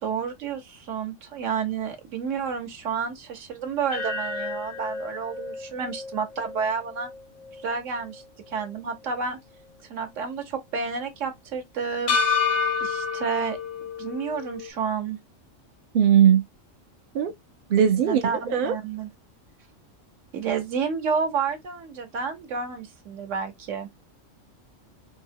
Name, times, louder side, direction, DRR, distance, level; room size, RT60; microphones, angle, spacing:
voice 1, 0.0-7.1 7.6-9.4 9.9-12.2 12.8-13.6 14.0-15.2 18.0-19.1 20.3-23.9, right 6 dB, 75° right, 1.1 m, -30 dB
sound 1, 3.9-8.2 8.6-8.7 12.1-14.7, left 5 dB, 50° left, 0.5 m, -29 dB
voice 2, 15.9-16.4 17.1-17.3 17.7-18.2 18.5-18.8, right 9 dB, 60° right, 0.6 m, -18 dB
3.7 x 2.0 x 2.7 m
omnidirectional pair, 1.3 m